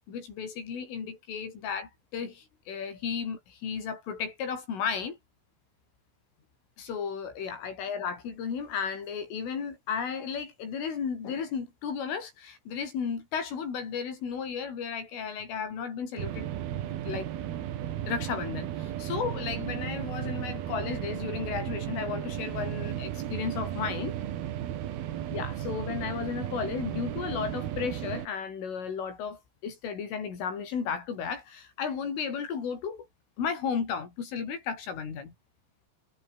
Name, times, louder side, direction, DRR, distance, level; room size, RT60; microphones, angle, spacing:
voice 1, 0.1-5.2 6.8-17.3 18.1-24.2 25.3-33.1 33.4-35.3, left 6 dB, 80° left, 8.2 m, -34 dB
sound 1, 16.2-28.3, right 11 dB, 60° right, 3.2 m, -35 dB
omnidirectional pair, 5.6 m